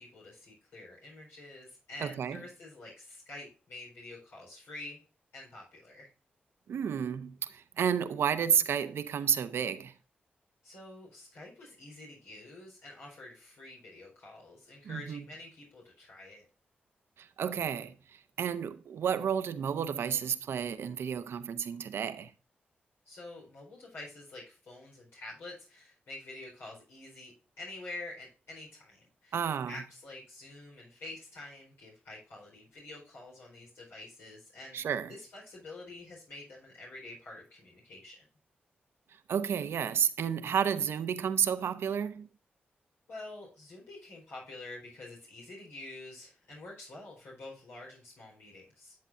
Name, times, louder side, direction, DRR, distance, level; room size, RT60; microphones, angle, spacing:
voice 1, 0.0-5.0 5.3-6.1 10.6-16.4 23.1-38.3 43.1-49.0, left 2 dB, 90° left, 4.3 m, -47 dB
voice 2, 2.0-2.4 6.7-9.9 14.8-15.2 17.2-22.3 29.3-29.8 34.7-35.2 39.3-42.3, right 8 dB, 80° right, 0.8 m, -31 dB
10.5 x 7.6 x 2.6 m
cardioid pair, 65°, 4 cm